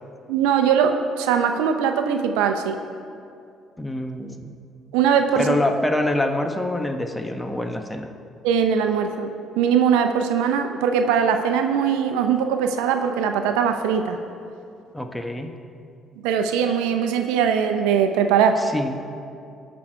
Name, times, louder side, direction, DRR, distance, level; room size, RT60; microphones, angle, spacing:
voice 1, 0.3-2.8 4.9-5.6 8.4-14.2 16.2-18.6, right 7 dB, 85° right, 7 dB, 0.7 m, -21 dB
voice 2, 3.8-4.5 5.4-8.1 14.9-15.5 18.7-18.9, left 1 dB, 10° left, 5 dB, 1.1 m, -25 dB
18.5 x 6.3 x 4.6 m, 2.5 s
hypercardioid pair, 60°, 0 cm